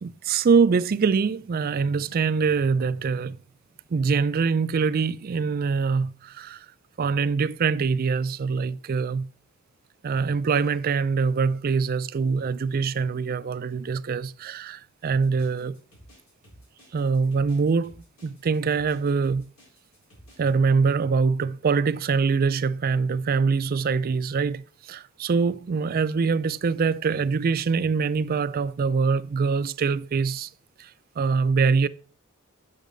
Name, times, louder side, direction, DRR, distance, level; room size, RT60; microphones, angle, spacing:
voice 1, 0.0-3.4 3.9-6.7 7.0-9.3 10.0-15.8 16.9-17.9 18.2-19.4 20.4-30.5 30.8-30.9 31.2-31.9, right 5 dB, 45° right, 0.4 m, -24 dB
sound 1, 15.0-20.5, equal, 90° left, 4.1 m, -53 dB
8.2 x 5.8 x 3.8 m
head